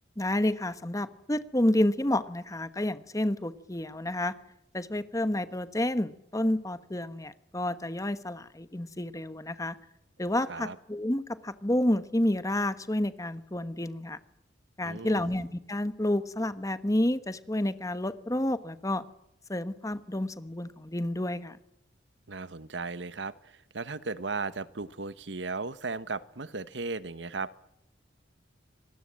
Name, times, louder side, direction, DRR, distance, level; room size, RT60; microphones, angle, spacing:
voice 1, 0.2-4.3 4.7-9.8 10.2-14.2 14.8-19.0 19.5-21.6, left 1 dB, 20° left, 13 dB, 1.1 m, -29 dB
voice 2, 14.8-15.4 22.3-27.6, right 3 dB, 75° right, 15 dB, 1.1 m, -36 dB
25.5 x 20.0 x 7.6 m, 0.82 s
head